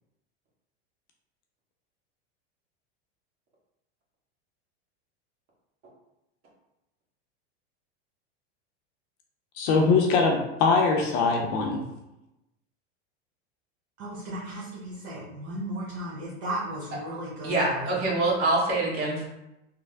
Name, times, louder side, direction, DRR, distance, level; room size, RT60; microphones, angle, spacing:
voice 1, 9.6-11.8, left 4 dB, 50° left, 2 dB, 0.5 m, -22 dB
voice 2, 14.0-17.9, right 1 dB, 70° right, -5 dB, 1.0 m, -35 dB
voice 3, 17.4-19.3, right 2 dB, 40° right, -4 dB, 1.2 m, -25 dB
3.2 x 2.0 x 3.3 m, 0.93 s
supercardioid pair, 130°, 33 cm